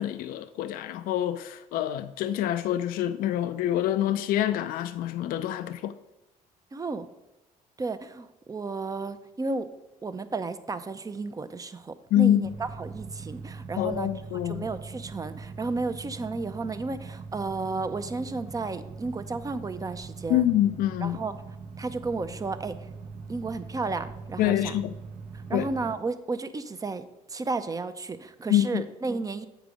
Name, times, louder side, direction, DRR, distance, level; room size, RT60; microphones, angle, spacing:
voice 1, 0.0-6.0 12.1-12.6 13.8-14.7 20.3-21.2 24.4-24.9 25.5-25.7 28.5-28.8, left 12 dB, 75° left, 0.4 m, -26 dB
voice 2, 6.7-7.1 7.8-9.7 10.0-14.1 14.5-20.5 21.0-21.3 21.8-22.7 23.3-24.7 25.5-27.1 27.3-29.5, right 3 dB, 25° right, 0.6 m, -33 dB
sound 1, 12.4-25.9, right 4 dB, 55° right, 0.8 m, -42 dB
8.0 x 5.1 x 4.9 m
cardioid pair, 85°, 15 cm